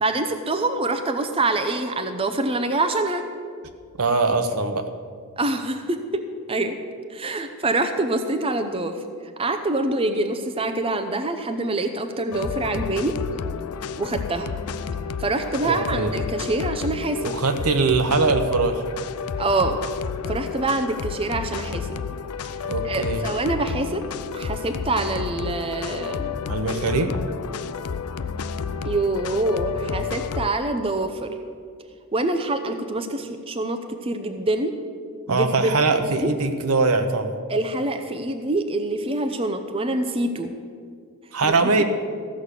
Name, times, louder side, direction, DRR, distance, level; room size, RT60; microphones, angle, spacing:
voice 1, 0.0-3.2 5.4-6.2 6.5-6.8 7.1-9.0 9.4-13.1 14.0-14.5 15.2-17.3 19.4-19.8 20.3-22.0 22.8-24.0 24.3-26.4 28.8-31.3 32.1-34.7 35.3-36.3 37.5-40.5 41.4-41.5 41.8-41.9, right 2 dB, 25° right, 6 dB, 0.6 m, -25 dB
voice 2, 4.0-4.8 15.6-16.1 17.2-18.8 22.6-23.2 26.5-27.1 35.3-37.4 41.3-41.8, right 3 dB, 75° right, 7 dB, 1.0 m, -22 dB
sound 1, 12.3-30.5, left 6 dB, 80° left, 0.5 m, -31 dB
14.5 x 6.3 x 8.2 m, 2.1 s
head